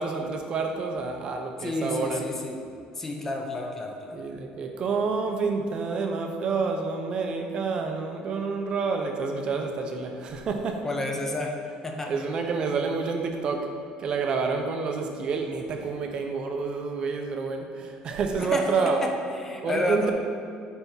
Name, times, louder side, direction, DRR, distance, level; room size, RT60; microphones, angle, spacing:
voice 1, 0.0-2.3 4.1-10.8 12.1-19.0 19.6-20.1, right 4 dB, 35° right, 4 dB, 0.7 m, -28 dB
voice 2, 1.6-2.6 3.0-4.2 10.8-12.1 18.4-20.1, left 2 dB, 15° left, 2 dB, 0.6 m, -31 dB
8.8 x 3.5 x 5.5 m, 2.5 s
cardioid pair, 160°, 3 cm